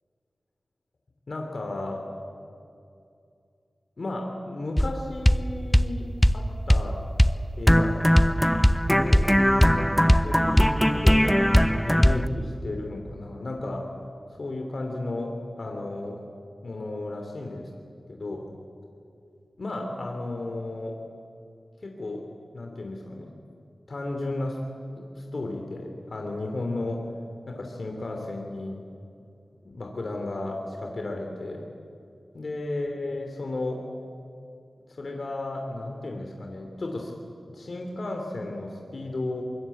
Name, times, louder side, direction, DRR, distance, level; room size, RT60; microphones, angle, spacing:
voice 1, 1.3-2.0 4.0-7.0 7.6-8.0 9.0-9.3 9.7-9.9 10.2-13.9 14.4-16.2 16.6-17.7 18.1-18.4 19.6-20.9 21.8-22.2 22.5-23.3 23.9-24.6 25.0-27.0 27.5-28.8 29.6-31.6 32.3-33.8 34.9-37.1 37.5-39.4, left 2 dB, 60° left, 2 dB, 3.2 m, -34 dB
sound 1, 4.8-4.9 5.2-5.4 5.7-5.9 6.2-6.4 6.7-6.9 7.2-7.4 7.7-12.3, equal, 5° left, 0.8 m, -19 dB
24.0 x 21.5 x 8.6 m, 2.5 s
cardioid pair, 50°, 0 cm